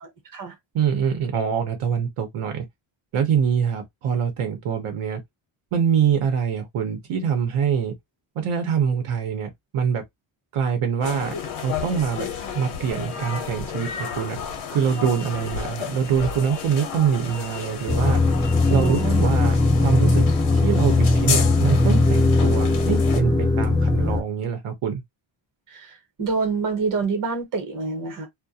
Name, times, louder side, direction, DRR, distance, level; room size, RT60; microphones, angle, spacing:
voice 1, 0.7-2.6 3.1-5.2 5.7-7.9 8.4-10.0 10.5-11.3 11.6-12.3 12.5-14.4 14.7-18.2 18.7-20.3 20.5-25.0, right 7 dB, 80° right, 0.8 m, -24 dB
sound 1, 11.0-23.2, left 7 dB, 75° left, 0.8 m, -32 dB
sound 2, 17.9-24.2, left 2 dB, 10° left, 0.3 m, -19 dB
voice 2, 18.7-19.3 25.7-25.9 26.2-28.3, right 4 dB, 40° right, 0.9 m, -26 dB
2.3 x 2.1 x 2.6 m
wide cardioid pair, 180°, 50 cm